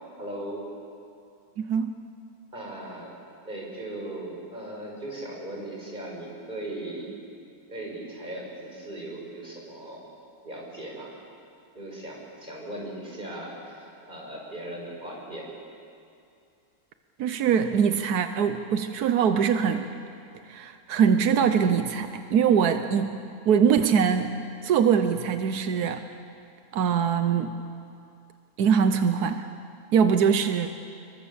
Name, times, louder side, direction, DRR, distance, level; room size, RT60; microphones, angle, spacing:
voice 1, 0.2-0.7 2.5-3.1 3.4-7.1 7.7-10.0 10.4-11.1 11.7-15.5, right 1 dB, 30° right, -2 dB, 5.9 m, -38 dB
voice 2, 1.6-1.9 17.2-19.9 20.5-23.2 23.5-24.3 24.6-26.0 26.7-27.5 28.6-29.4 29.9-30.7, right 7 dB, 90° right, 8 dB, 1.4 m, -22 dB
27.5 x 22.5 x 7.1 m, 2.5 s
omnidirectional pair, 1.6 m